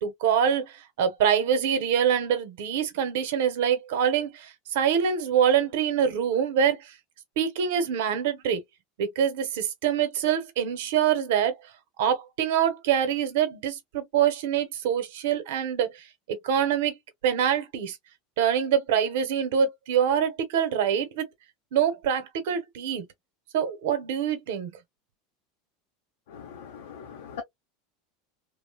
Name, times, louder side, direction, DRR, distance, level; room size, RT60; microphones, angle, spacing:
voice 1, 0.0-6.9 7.4-8.6 9.0-11.6 12.0-17.0 17.2-18.0 18.4-21.3 21.7-23.1 23.5-24.8, right 8 dB, 75° right, 1.0 m, -25 dB
voice 2, 26.3-27.4, left 7 dB, 80° left, 0.7 m, -41 dB
2.7 x 2.2 x 2.2 m
supercardioid pair, 130°, 0 cm